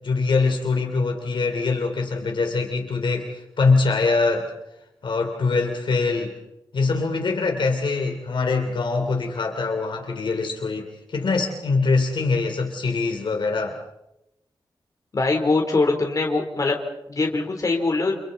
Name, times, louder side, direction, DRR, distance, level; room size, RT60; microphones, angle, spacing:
voice 1, 0.0-4.5 5.0-6.3 6.7-13.8, left 4 dB, 65° left, 3 dB, 3.2 m, -23 dB
voice 2, 15.1-16.8 17.1-18.2, left 3 dB, 40° left, 2 dB, 3.8 m, -22 dB
29.5 x 28.0 x 4.2 m, 0.86 s
wide cardioid pair, 175°, 9 cm